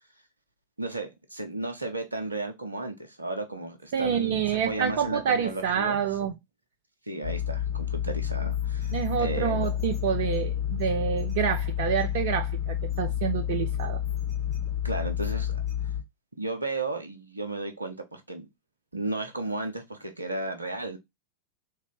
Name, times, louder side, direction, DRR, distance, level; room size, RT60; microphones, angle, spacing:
voice 1, 0.8-6.3 7.1-9.7 14.8-15.5 16.4-18.4 18.9-21.0, right 2 dB, 80° right, 0.8 m, -34 dB
voice 2, 3.9-6.3 8.9-14.0, right 8 dB, 50° right, 0.5 m, -28 dB
sound 1, 7.2-16.0, left 10 dB, 20° left, 2.4 m, -30 dB
3.6 x 3.3 x 3.6 m
figure-of-eight pair, 90°, 0 cm